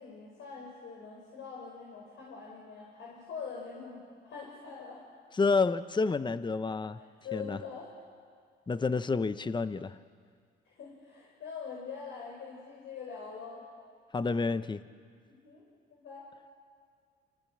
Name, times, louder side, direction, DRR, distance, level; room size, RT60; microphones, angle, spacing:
voice 1, 0.0-5.0 7.0-7.9 10.7-13.6 15.3-16.3, left 5 dB, 70° left, -3 dB, 5.5 m, -44 dB
voice 2, 5.4-7.0 7.3-7.6 8.7-10.0 14.1-14.8, left 4 dB, 25° left, 13 dB, 0.8 m, -29 dB
28.0 x 23.0 x 7.6 m, 2.1 s
cardioid pair, 90°, 20 cm